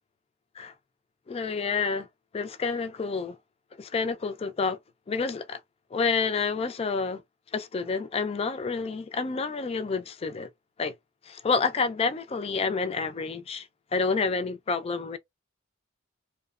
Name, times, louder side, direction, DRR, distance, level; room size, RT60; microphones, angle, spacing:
voice 1, 1.3-2.1 2.3-3.4 3.8-4.8 5.1-5.6 5.9-7.2 7.5-10.5 10.8-10.9 11.3-13.7 13.9-15.2, left 4 dB, 30° left, 0.3 m, -29 dB
2.9 x 2.0 x 2.3 m
head